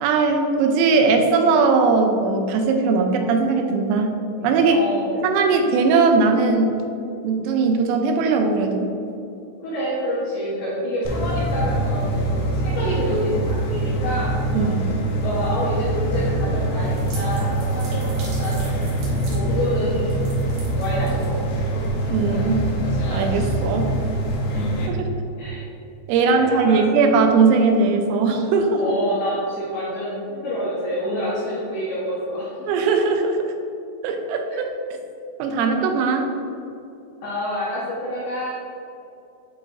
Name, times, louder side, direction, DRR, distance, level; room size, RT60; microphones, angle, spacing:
voice 1, 0.0-4.2 4.4-4.8 5.2-6.8 7.2-8.9 14.5-14.8 22.1-22.6 23.1-23.9 26.1-28.9 32.7-33.4 34.0-34.4 35.4-36.3, right 4 dB, 90° right, 4 dB, 3.3 m, -19 dB
voice 2, 4.7-5.1 9.6-14.8 15.2-16.9 17.1-20.4 20.8-21.7 24.5-24.9 25.4-25.6 26.3-26.8 28.7-32.5 34.5-34.6 37.2-38.5, equal, 75° left, -9 dB, 2.4 m, -27 dB
sound 1, 11.0-24.9, right 1 dB, 90° left, 2.3 m, -24 dB
sound 2, 15.9-22.5, right 2 dB, 70° right, 3.5 m, -36 dB
9.9 x 4.0 x 2.6 m, 2.7 s
omnidirectional pair, 5.9 m